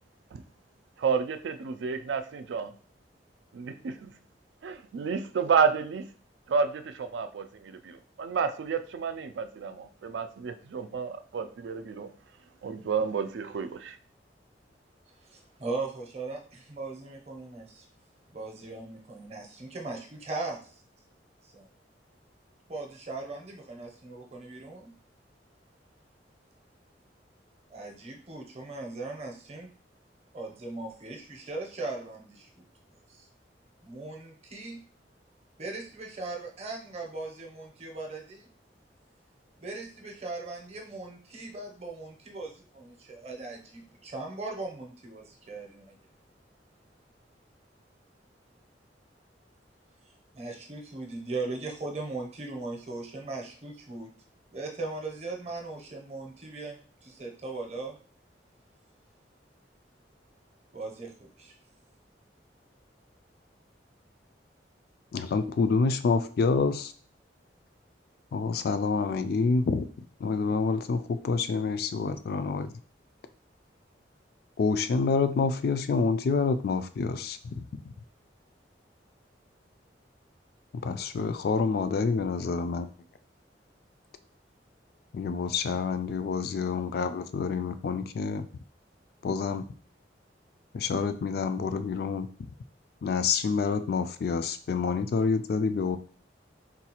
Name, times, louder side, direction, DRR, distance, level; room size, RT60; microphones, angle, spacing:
voice 1, 1.0-2.7 3.5-4.1 4.6-6.0 6.5-12.1 12.6-14.0, right 6 dB, 80° right, 10 dB, 0.3 m, -30 dB
voice 2, 15.2-17.8 18.3-20.7 21.5-21.7 22.7-24.9 27.7-29.7 30.3-32.6 33.1-33.3 33.8-34.8 35.6-38.5 39.6-45.9 50.3-54.1 54.5-58.0 60.7-61.5, right 3 dB, 35° right, 1 dB, 0.6 m, -39 dB
voice 3, 65.1-66.9 68.3-69.9 70.2-72.7 74.6-77.9 80.7-82.9 85.1-88.5 89.2-89.6 90.7-92.5 93.0-96.0, left 4 dB, 55° left, 10 dB, 0.3 m, -28 dB
3.9 x 2.3 x 2.9 m, 0.43 s
head